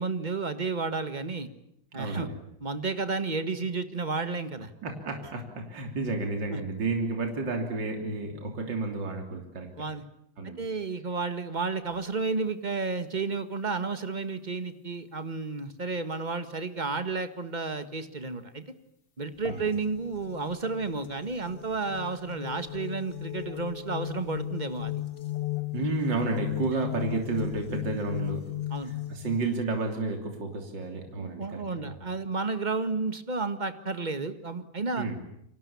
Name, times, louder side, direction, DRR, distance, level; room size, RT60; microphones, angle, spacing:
voice 1, 0.0-1.5 1.9-2.3 2.6-4.7 6.5-6.6 9.8-10.0 10.6-18.6 19.2-24.9 28.7-29.0 31.2-35.1, right 4 dB, 25° right, 10 dB, 1.6 m, -32 dB
voice 2, 1.9-2.3 4.8-9.7 10.4-10.6 19.4-19.6 25.7-28.5 28.8-31.9 35.0-35.2, right 3 dB, 60° right, 3 dB, 3.8 m, -31 dB
sound 1, 19.5-29.4, left 15 dB, 30° left, 1.2 m, -36 dB
29.5 x 24.5 x 7.1 m, 0.75 s
omnidirectional pair, 2.3 m